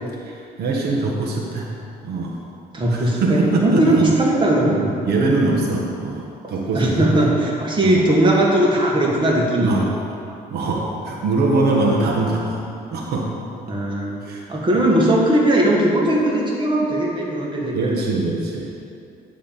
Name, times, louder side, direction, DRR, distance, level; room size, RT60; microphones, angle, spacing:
voice 1, 0.2-1.7 2.0-2.4 2.9-4.0 4.7-4.8 5.0-7.3 7.8-8.0 9.6-9.9 10.5-12.6 12.9-13.3 14.2-14.4 17.7-18.7, right 2 dB, 70° right, -1 dB, 1.4 m, -22 dB
voice 2, 2.7-4.9 6.7-9.8 13.7-18.2, right 1 dB, 30° right, -3 dB, 1.9 m, -19 dB
10.0 x 3.6 x 7.1 m, 2.5 s
cardioid pair, 110°, 17 cm